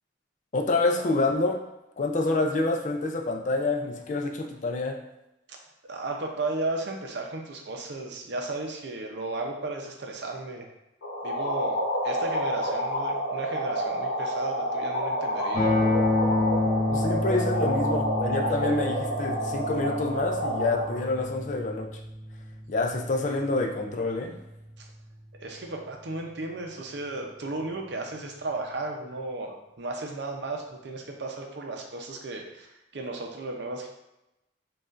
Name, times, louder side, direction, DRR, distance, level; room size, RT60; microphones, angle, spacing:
voice 1, 0.5-1.6 2.0-5.0 16.9-22.0 22.7-24.4, left 3 dB, 40° left, 2 dB, 0.4 m, -27 dB
voice 2, 5.9-10.6 11.2-11.8 12.0-15.7 25.4-33.9, right 2 dB, 60° right, 1 dB, 0.6 m, -34 dB
sound 1, 11.0-21.0, equal, 70° left, 0.9 m, -29 dB
sound 2, 15.5-25.5, left 2 dB, 20° left, 1.0 m, -30 dB
5.1 x 2.4 x 2.4 m, 0.91 s
head